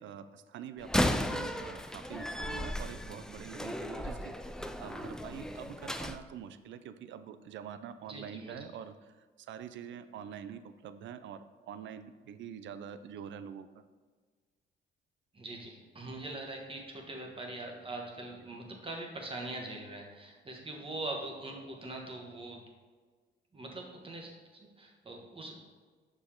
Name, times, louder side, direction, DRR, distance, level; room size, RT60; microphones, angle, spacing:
voice 1, 0.0-13.8, right 8 dB, 70° right, 12 dB, 0.5 m, -45 dB
Slam, 0.8-6.2, left 1 dB, 5° left, 0.3 m, -35 dB
voice 2, 8.1-8.6 15.3-22.6 23.5-24.3 24.6-25.6, right 2 dB, 25° right, 1 dB, 1.3 m, -42 dB
6.4 x 4.8 x 3.7 m, 1.4 s
cardioid pair, 90°, 20 cm